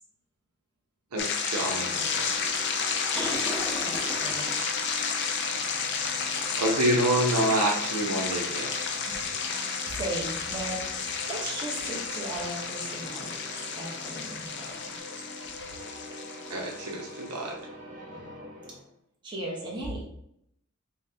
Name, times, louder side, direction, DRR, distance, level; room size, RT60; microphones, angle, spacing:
voice 1, 1.1-2.5 6.6-8.7 16.5-17.6, right 1 dB, 80° right, 0 dB, 0.8 m, -27 dB
sound 1, 1.2-17.3, left 5 dB, 50° left, 0.4 m, -32 dB
sound 2, 1.4-18.9, equal, 40° right, 1.0 m, -45 dB
sound 3, 3.1-15.0, equal, ahead, 0.7 m, -45 dB
voice 2, 3.1-4.6 9.1-13.3 13.7-15.0 19.2-20.1, right 1 dB, 20° right, -4 dB, 1.1 m, -37 dB
5.6 x 2.3 x 2.8 m, 0.74 s
head